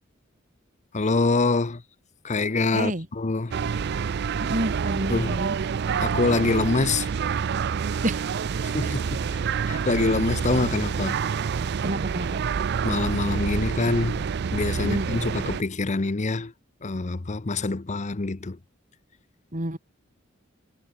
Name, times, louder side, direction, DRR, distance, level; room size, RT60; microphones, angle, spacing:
voice 1, 0.9-1.8 2.2-3.6 5.1-5.4 6.0-7.1 8.6-9.4 9.7-11.2 12.8-14.3 14.5-16.5 16.8-18.6, left 3 dB, 35° left, 0.7 m, -25 dB
voice 2, 2.7-3.1 4.4-5.6 8.0-8.2 8.8-9.0 9.4-9.5 11.8-12.5 14.8-15.1 19.5-19.8, right 1 dB, 40° right, 3.4 m, -29 dB
sound 1, 3.5-15.6, right 6 dB, 55° right, 0.4 m, -27 dB
head